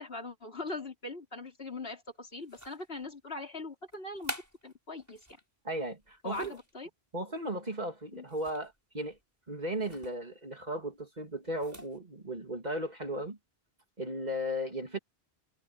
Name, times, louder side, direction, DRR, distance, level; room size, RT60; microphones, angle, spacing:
voice 1, 0.0-5.3 6.2-6.9 8.1-8.2, left 2 dB, 65° left, 3.9 m, -41 dB
sound 1, 2.4-3.1 3.9-5.4 6.0-6.7 8.3-8.8 9.1-9.2 9.8-10.2 11.5-12.0, equal, 15° right, 6.8 m, -46 dB
voice 2, 5.6-6.6 7.1-9.2 9.5-13.4 14.0-15.0, right 1 dB, 40° right, 3.0 m, -36 dB
omnidirectional pair, 1.1 m